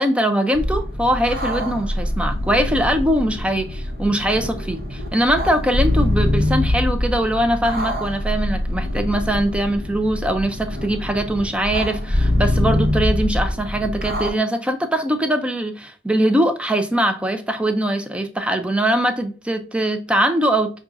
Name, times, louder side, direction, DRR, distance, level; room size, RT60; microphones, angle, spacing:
voice 1, 0.0-20.7, right 1 dB, 5° right, 0.4 m, -21 dB
sound 1, 0.5-14.3, left 1 dB, 55° right, 0.9 m, -24 dB
5.9 x 2.3 x 2.5 m
head